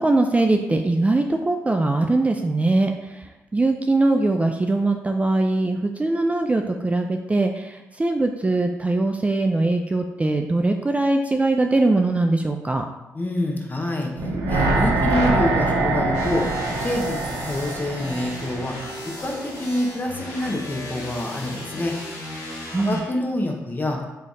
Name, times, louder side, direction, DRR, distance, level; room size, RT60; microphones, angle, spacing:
voice 1, 0.0-12.9 22.7-23.0, right 2 dB, 20° right, 4 dB, 0.3 m, -21 dB
voice 2, 13.1-16.5 16.8-18.8 19.0-22.0 22.8-24.0, left 1 dB, 30° left, 1 dB, 0.8 m, -26 dB
sound 1, 14.2-19.3 19.6-19.7, right 2 dB, 70° right, 0.7 m, -24 dB
sound 2, 16.1-23.0, left 1 dB, 80° left, 1.0 m, -36 dB
3.3 x 2.3 x 4.0 m, 1.0 s
supercardioid pair, 45°, 6 cm